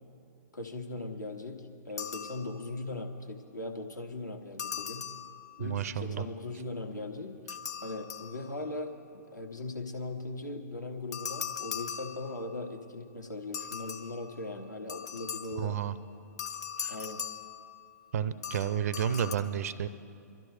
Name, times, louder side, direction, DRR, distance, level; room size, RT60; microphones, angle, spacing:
voice 1, 0.5-5.1 5.6-15.8 16.9-17.3, left 2 dB, 85° left, 1 dB, 1.2 m, -39 dB
sound 1, 2.0-2.9 4.6-5.9 7.5-8.9 11.1-12.8 13.5-15.8 16.4-18.1 18.4-19.3, left 7 dB, 65° left, 0.8 m, -40 dB
voice 2, 5.6-6.2 15.5-16.0 16.8-17.0 18.1-19.9, right 8 dB, 55° right, 15 dB, 0.5 m, -31 dB
23.5 x 13.0 x 3.3 m, 2.6 s
figure-of-eight pair, 110°, 10 cm